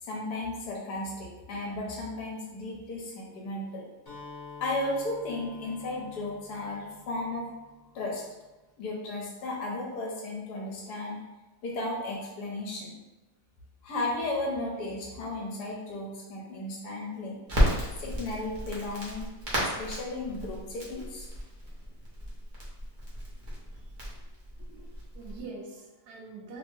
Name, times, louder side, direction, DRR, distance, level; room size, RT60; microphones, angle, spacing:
voice 1, 0.0-3.8 4.6-7.5 7.9-8.3 8.8-11.2 11.6-12.9 13.8-17.4 18.0-19.3 19.6-21.3, left 2 dB, 70° left, -3 dB, 1.2 m, -34 dB
Acoustic guitar, 4.1-7.9, left 4 dB, 30° left, 1.1 m, -48 dB
Crackle, 17.5-25.4, equal, 45° right, 0.6 m, -33 dB
voice 2, 24.6-26.6, right 3 dB, 70° right, -2 dB, 1.2 m, -45 dB
3.3 x 2.0 x 3.1 m, 1.1 s
omnidirectional pair, 1.9 m